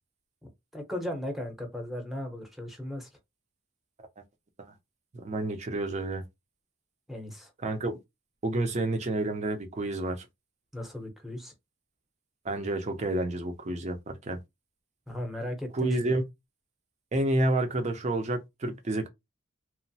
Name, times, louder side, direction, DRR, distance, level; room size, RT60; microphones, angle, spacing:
voice 1, 0.7-3.1 7.1-7.5 10.7-11.5 15.1-16.2, left 1 dB, ahead, 0.7 m, -36 dB
voice 2, 5.1-6.2 7.6-8.0 8.4-10.3 12.4-14.4 15.7-16.2 17.1-19.1, right 2 dB, 35° right, 0.5 m, -29 dB
2.9 x 2.0 x 2.6 m
head